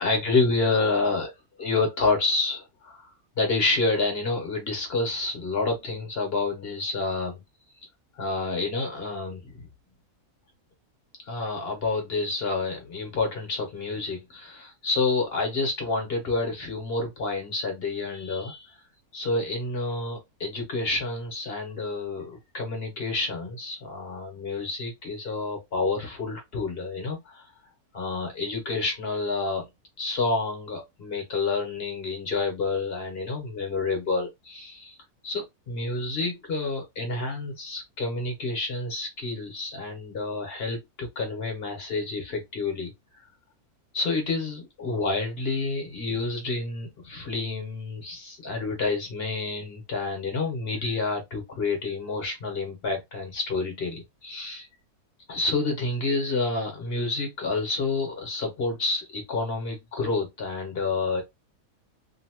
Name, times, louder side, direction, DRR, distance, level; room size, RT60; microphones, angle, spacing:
voice 1, 0.0-1.3 1.6-3.1 3.4-7.4 8.2-9.7 11.2-18.8 19.1-27.5 27.9-29.6 30.0-35.0 35.2-42.9 43.9-54.7 55.3-61.2, left 3 dB, 45° left, 1.1 m, -29 dB
2.7 x 2.7 x 2.8 m
omnidirectional pair, 1.6 m